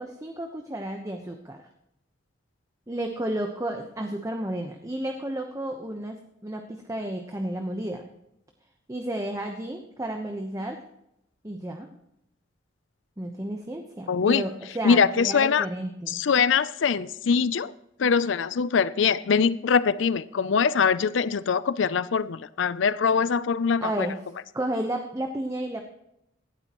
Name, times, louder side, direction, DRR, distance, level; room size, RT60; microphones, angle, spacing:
voice 1, 0.0-1.6 2.9-8.1 8.9-10.8 11.4-11.9 13.2-16.2 23.8-24.2 24.5-25.8, right 1 dB, 15° right, 4 dB, 1.0 m, -32 dB
voice 2, 14.1-14.4 14.8-15.7 16.1-17.7 18.0-24.1, left 6 dB, 75° left, 17 dB, 0.5 m, -23 dB
17.5 x 12.5 x 3.0 m, 0.80 s
head